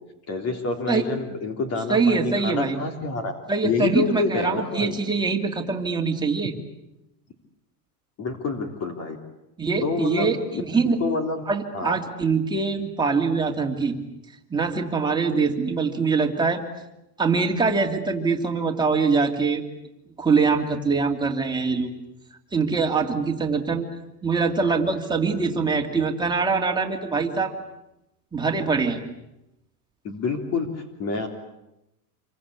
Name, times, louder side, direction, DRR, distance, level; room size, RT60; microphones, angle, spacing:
voice 1, 0.3-3.3 3.6-5.0 8.2-9.2 9.8-10.6 11.0-11.4 11.7-12.0 30.0-31.3, left 4 dB, 30° left, 4 dB, 3.5 m, -27 dB
voice 2, 1.9-2.8 3.5-6.5 9.6-11.1 11.5-14.0 14.5-16.6 17.2-19.6 20.2-21.9 22.5-23.9 24.2-27.5 28.3-29.0, right 4 dB, 10° right, 1 dB, 2.8 m, -23 dB
28.5 x 23.5 x 8.6 m, 0.89 s
supercardioid pair, 155°, 49 cm